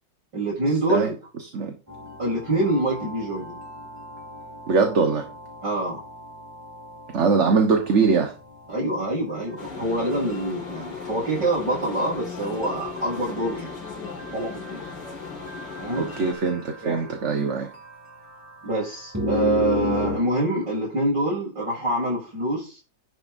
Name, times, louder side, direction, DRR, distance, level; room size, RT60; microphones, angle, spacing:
voice 1, 0.3-1.1 2.2-3.6 5.6-6.0 8.7-13.7 14.3-14.9 15.8-16.1 16.8-17.0 18.6-22.8, right 1 dB, 85° right, 7.4 m, -26 dB
sound 1, 1.9-20.2, left 2 dB, 10° right, 2.5 m, -36 dB
voice 2, 4.7-5.3 7.1-8.3 16.0-17.7, right 4 dB, 45° right, 1.5 m, -21 dB
sound 2, 9.6-16.3, left 5 dB, 80° left, 2.9 m, -37 dB
11.0 x 9.2 x 2.7 m
omnidirectional pair, 1.9 m